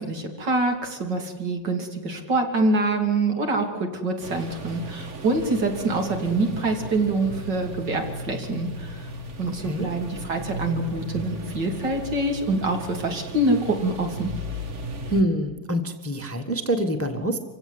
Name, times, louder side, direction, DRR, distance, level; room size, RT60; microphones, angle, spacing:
voice 1, 0.0-9.1 9.4-14.3, right 2 dB, 65° right, 3 dB, 3.5 m, -25 dB
sound 1, 4.2-15.2, equal, 40° right, 1.8 m, -36 dB
voice 2, 15.1-17.4, right 1 dB, 10° left, 6 dB, 1.4 m, -25 dB
26.0 x 16.5 x 8.0 m, 1.2 s
omnidirectional pair, 2.0 m